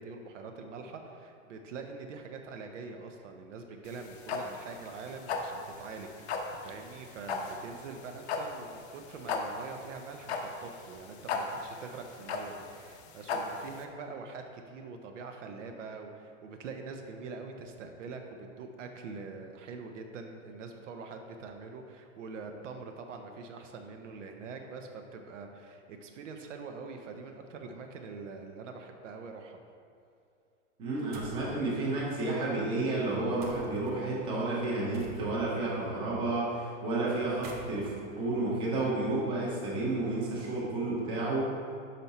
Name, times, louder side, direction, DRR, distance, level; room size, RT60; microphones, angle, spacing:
voice 1, 0.0-29.6, right 4 dB, 70° right, 4 dB, 0.8 m, -44 dB
sound 1, 3.9-13.8, left 4 dB, 55° left, 0.7 m, -36 dB
voice 2, 30.8-41.5, right 2 dB, 15° right, -6 dB, 0.9 m, -31 dB
sound 2, 31.1-31.5 33.4-33.9 34.9-35.6 37.2-39.2, right 2 dB, 30° right, 0.5 m, -46 dB
5.8 x 5.3 x 4.1 m, 2.5 s
supercardioid pair, 170°, 39 cm